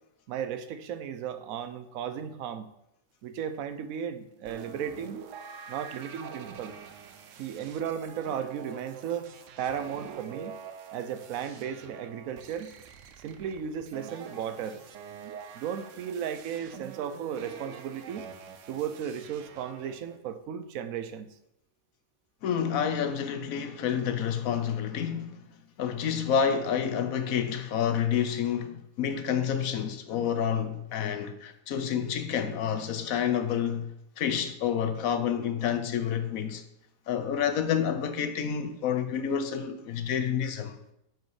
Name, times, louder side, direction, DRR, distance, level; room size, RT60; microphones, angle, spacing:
voice 1, 0.3-2.7 3.2-5.2 5.7-6.7 7.4-9.3 9.6-10.5 10.9-12.7 13.2-14.8 15.5-18.3 18.7-21.3, right 8 dB, 90° right, 1.1 m, -35 dB
sound 1, 4.5-20.2, right 7 dB, 70° right, 1.0 m, -46 dB
voice 2, 22.4-25.4 25.8-36.6 37.1-40.8, left 8 dB, 85° left, 1.2 m, -29 dB
7.8 x 4.9 x 4.8 m
omnidirectional pair, 1.4 m